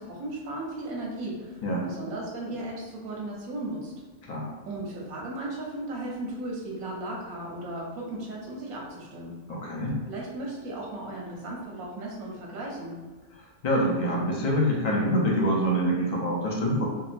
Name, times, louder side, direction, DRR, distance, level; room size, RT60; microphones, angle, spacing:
voice 1, 0.0-3.9 4.6-9.4 10.1-13.0, right 1 dB, 85° right, -3 dB, 1.2 m, -36 dB
voice 2, 9.5-10.0 13.6-16.9, equal, 85° left, -3 dB, 0.3 m, -25 dB
3.7 x 2.1 x 2.5 m, 1.3 s
omnidirectional pair, 1.5 m